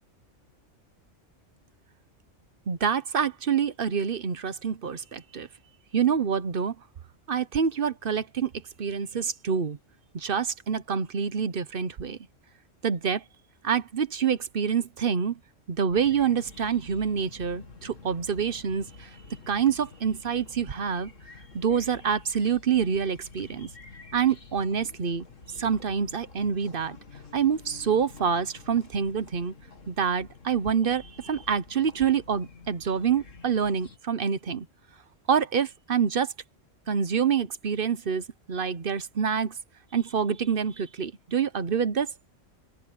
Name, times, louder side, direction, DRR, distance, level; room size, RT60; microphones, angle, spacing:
voice 1, 2.7-5.5 5.9-6.7 7.3-8.5 8.8-9.8 10.1-12.2 12.8-13.2 13.6-15.4 15.7-19.1 19.5-21.1 21.5-23.7 24.1-25.2 25.6-27.0 27.3-29.5 29.9-34.6 35.3-36.3 36.9-39.5 39.9-42.1, right 7 dB, 50° right, 1.0 m, -26 dB
sound 1, 15.9-34.0, left 4 dB, 85° left, 2.6 m, -49 dB
open air
omnidirectional pair, 1.3 m